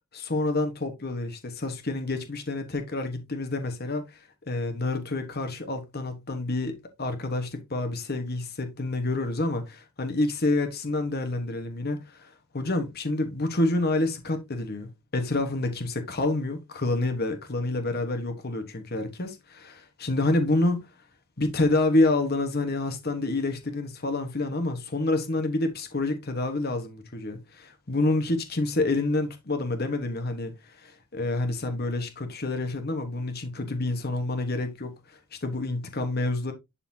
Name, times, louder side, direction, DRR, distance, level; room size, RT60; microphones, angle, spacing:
voice 1, 0.1-4.2 4.5-20.9 21.4-36.5, left 2 dB, 45° left, 1.3 m, -28 dB
11.0 x 4.1 x 2.7 m
head